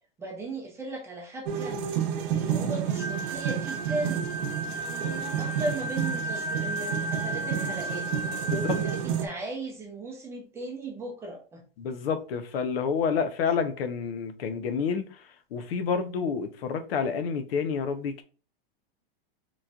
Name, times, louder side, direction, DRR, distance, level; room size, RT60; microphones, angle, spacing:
voice 1, 0.2-1.8 2.3-4.3 5.4-8.1 8.4-11.6, right 2 dB, 10° right, 0.5 m, -36 dB
sound 1, 1.5-9.3, right 8 dB, 60° right, 0.8 m, -30 dB
sound 2, 3.0-9.1, right 1 dB, 65° left, 1.5 m, -34 dB
voice 2, 11.8-15.2 15.5-18.2, left 6 dB, 85° left, 0.8 m, -29 dB
4.0 x 3.1 x 2.3 m
supercardioid pair, 165°, 29 cm